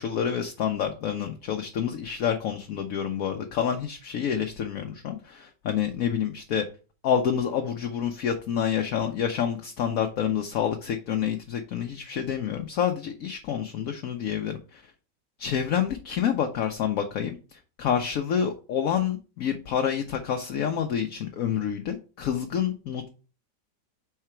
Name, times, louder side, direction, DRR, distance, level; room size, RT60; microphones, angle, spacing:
voice 1, 0.0-6.6 7.0-14.8 15.4-23.1, left 8 dB, 60° left, 4 dB, 1.0 m, -28 dB
5.6 x 4.8 x 4.4 m, 0.36 s
omnidirectional pair, 1.9 m